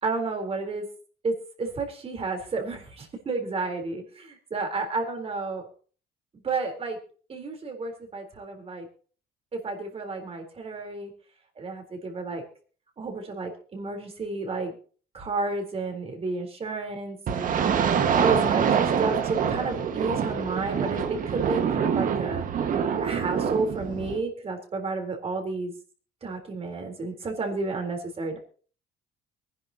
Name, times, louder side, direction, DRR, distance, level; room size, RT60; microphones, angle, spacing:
voice 1, 0.0-0.9 1.2-5.7 6.4-7.0 7.3-8.9 9.5-11.1 11.6-12.4 13.0-14.8 15.1-17.7 18.1-22.5 23.0-25.7 26.2-28.4, right 3 dB, 35° right, 3 dB, 3.8 m, -31 dB
sound 1, 17.3-24.2, right 7 dB, 55° right, 1.6 m, -25 dB
23.5 x 11.0 x 2.9 m, 0.40 s
cardioid pair, 110°, 17 cm